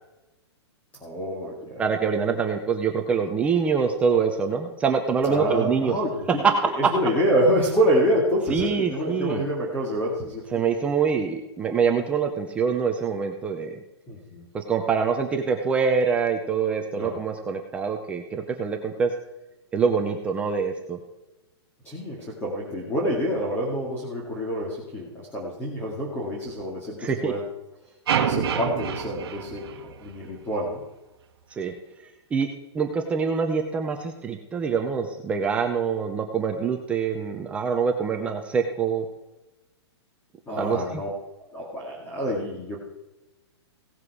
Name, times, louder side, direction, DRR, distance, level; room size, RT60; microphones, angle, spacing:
voice 1, 1.0-1.8 5.3-6.4 6.8-10.5 14.1-14.5 17.0-17.2 21.8-27.4 28.2-30.8 40.5-41.1 41.4-42.8, equal, 10° left, -4 dB, 2.1 m, -27 dB
voice 2, 1.8-5.9 6.3-6.5 6.8-6.9 8.5-9.5 10.5-13.8 14.5-19.1 19.7-21.0 27.0-27.3 31.5-31.7 32.3-32.5 32.7-39.1 40.6-41.0, right 6 dB, 10° right, 4 dB, 0.5 m, -25 dB
sound 1, 28.1-30.4, right 8 dB, 60° right, 1.3 m, -27 dB
17.0 x 7.5 x 4.8 m, 1.0 s
hypercardioid pair, 170°, 15 cm